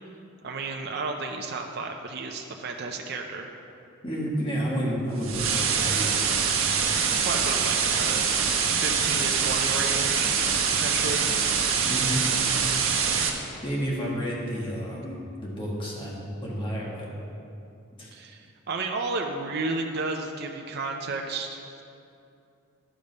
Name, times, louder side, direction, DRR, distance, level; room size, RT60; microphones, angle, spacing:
voice 1, 0.4-3.5 7.2-8.2 8.8-10.5 10.8-11.3 18.1-21.8, right 3 dB, 50° right, 2 dB, 0.6 m, -32 dB
voice 2, 4.0-6.2 11.9-12.2 13.6-17.1 18.0-18.1, equal, 25° left, -4 dB, 1.7 m, -30 dB
sound 1, 5.2-13.3, right 6 dB, 80° right, 0.9 m, -24 dB
11.5 x 5.3 x 5.3 m, 2.7 s
head